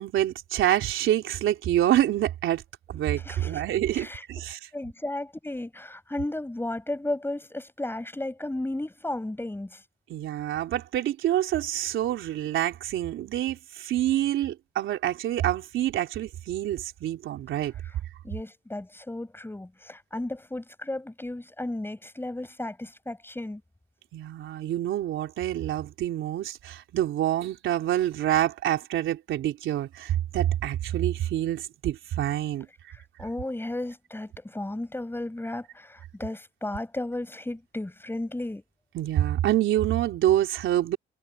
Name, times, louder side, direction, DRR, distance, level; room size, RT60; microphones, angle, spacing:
voice 1, 0.0-2.6 2.9-4.6 10.1-17.7 24.1-32.7 38.9-41.0, right 12 dB, 80° right, 3.7 m, -27 dB
voice 2, 3.2-3.6 3.9-4.2 4.7-9.8 18.2-23.6 32.9-38.6, left 1 dB, 10° left, 7.4 m, -34 dB
cardioid pair, 90°, 20 cm